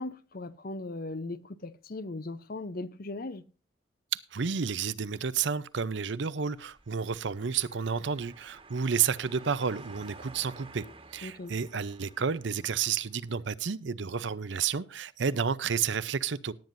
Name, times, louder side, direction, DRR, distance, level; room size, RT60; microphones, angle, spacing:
voice 1, 0.0-3.4 10.8-10.9 11.2-11.5, left 2 dB, 45° left, 0.7 m, -38 dB
voice 2, 4.1-10.8 11.1-16.5, right 6 dB, 65° right, 0.6 m, -31 dB
sound 1, 6.4-13.2, right 3 dB, 30° right, 1.5 m, -52 dB
18.5 x 9.3 x 2.6 m
head